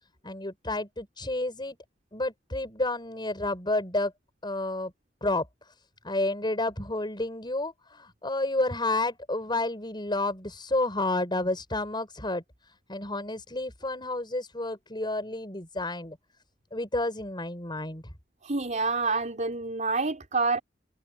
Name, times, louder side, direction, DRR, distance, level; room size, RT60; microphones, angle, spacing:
voice 1, 0.2-1.8 2.1-4.1 4.4-4.9 5.2-5.5 6.0-12.4 12.9-16.2 16.7-18.0, left 2 dB, 25° left, 6.0 m, -30 dB
voice 2, 18.4-20.6, right 3 dB, 45° right, 4.4 m, -27 dB
head